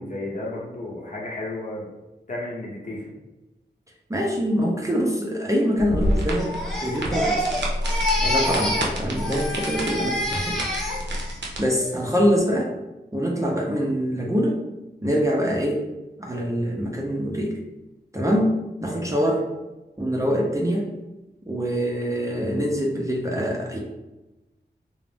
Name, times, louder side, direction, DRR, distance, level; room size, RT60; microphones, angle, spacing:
voice 1, 0.0-1.9 2.3-3.1 18.9-19.2, left 2 dB, 45° left, -3 dB, 0.8 m, -33 dB
voice 2, 4.1-6.5 6.8-7.5 8.2-10.6 11.6-12.7 13.1-14.6 15.0-15.8 16.2-17.5 18.1-19.4 20.0-21.0 21.5-23.8, equal, 20° right, -2 dB, 0.5 m, -24 dB
sound 1, 5.8-11.6, equal, 80° right, 0.5 m, -28 dB
Crying sobbing, 6.4-8.9 9.2-11.4 11.7-12.1, left 1 dB, ahead, 0.8 m, -27 dB
2.4 x 2.0 x 3.4 m, 1.0 s
cardioid pair, 50°, 18 cm